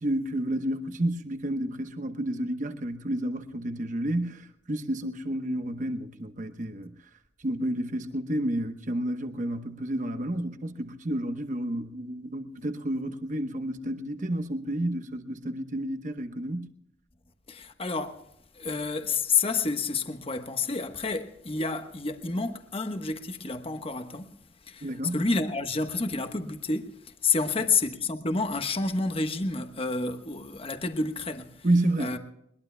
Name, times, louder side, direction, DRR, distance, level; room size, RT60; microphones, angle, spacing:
voice 1, 0.0-6.9 7.4-16.7 24.8-25.2 31.6-32.1, right 1 dB, 45° right, 1.0 m, -30 dB
voice 2, 17.5-18.2 18.5-24.3 24.6-31.7 32.0-32.2, left 4 dB, 35° left, 1.1 m, -29 dB
21.5 x 21.5 x 2.2 m
head